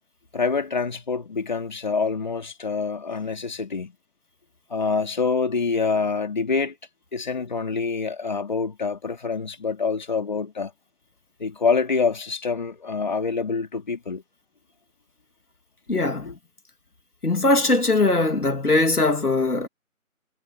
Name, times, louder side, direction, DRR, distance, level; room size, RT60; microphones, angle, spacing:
voice 1, 0.3-3.9 4.7-6.8 7.1-10.7 11.4-14.2 16.2-16.3, left 4 dB, 30° left, 2.5 m, -26 dB
voice 2, 15.9-16.3 17.2-19.7, left 2 dB, 90° left, 2.5 m, -20 dB
figure-of-eight pair, 165°, 44 cm